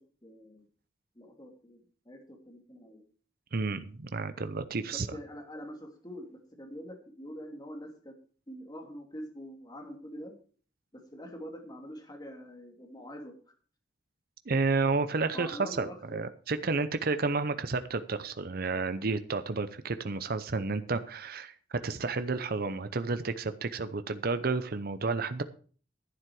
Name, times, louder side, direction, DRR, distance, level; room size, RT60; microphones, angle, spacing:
voice 1, 0.2-0.6 1.1-3.0 4.9-8.1 8.5-10.3 10.9-13.3 15.3-16.3, equal, 25° left, 3 dB, 2.6 m, -45 dB
voice 2, 3.5-5.1 14.5-25.4, right 3 dB, 55° right, 11 dB, 0.8 m, -31 dB
11.5 x 9.6 x 4.8 m, 0.41 s
head